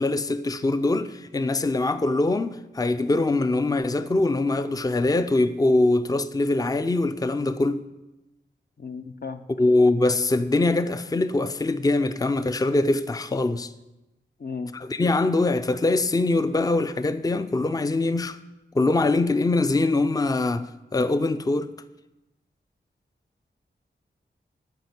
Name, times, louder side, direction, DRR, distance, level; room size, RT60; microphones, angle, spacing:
voice 1, 0.0-7.8 9.6-13.7 14.7-18.4 18.7-21.7, left 2 dB, 20° left, 0.5 m, -23 dB
voice 2, 8.8-9.5 14.4-14.7, left 4 dB, 55° left, 0.7 m, -34 dB
12.0 x 5.0 x 8.0 m
wide cardioid pair, 105°, 19 cm